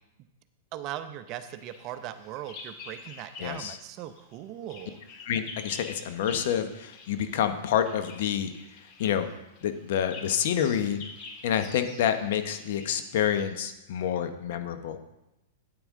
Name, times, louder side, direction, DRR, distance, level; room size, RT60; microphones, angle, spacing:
voice 1, 0.7-5.0, right 12 dB, 40° right, 11 dB, 0.6 m, -39 dB
Bird vocalization bird call bird song, 1.5-3.7 4.0-13.6, left 4 dB, 45° left, 1.8 m, -47 dB
voice 2, 3.4-3.8 5.3-8.5 9.0-9.3 9.6-11.0 11.4-15.0, left 9 dB, 65° left, 9 dB, 0.9 m, -28 dB
8.9 x 8.8 x 3.7 m, 0.93 s
hypercardioid pair, 125°, 0 cm